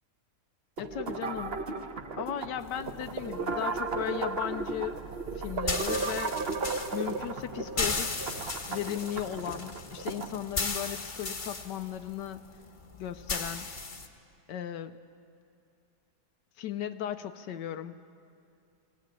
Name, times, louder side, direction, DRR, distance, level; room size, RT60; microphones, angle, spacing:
voice 1, 0.8-1.6 2.2-5.0 5.4-6.4 6.9-8.3 8.7-12.4 13.0-13.7 14.5-15.0 16.6-18.0, left 11 dB, 80° left, 10 dB, 1.3 m, -36 dB
sound 1, 0.8-10.4, right 4 dB, 40° right, 1.0 m, -35 dB
sound 2, 2.6-14.1, left 3 dB, 30° left, 1.2 m, -37 dB
19.5 x 16.5 x 9.0 m, 2.4 s
omnidirectional pair, 1.9 m